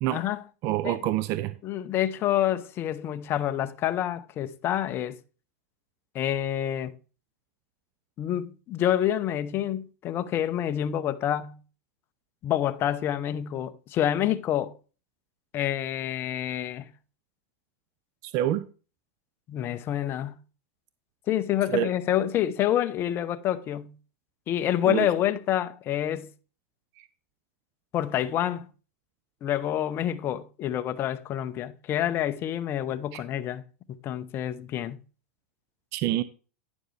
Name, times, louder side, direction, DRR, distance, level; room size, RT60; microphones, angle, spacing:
voice 1, 0.1-0.4 0.8-1.0 1.6-5.2 6.1-6.9 8.2-11.6 12.4-14.7 15.5-16.9 19.5-20.4 21.3-23.9 24.5-26.3 27.9-28.7 29.4-33.6 34.0-35.0, left 11 dB, 30° left, 0.6 m, -27 dB
voice 2, 0.6-1.5 18.2-18.7 21.7-21.9 24.9-25.1 27.0-27.1 33.1-33.2 35.9-36.2, right 13 dB, 45° right, 0.5 m, -27 dB
10.0 x 7.2 x 3.2 m
supercardioid pair, 135°, 8 cm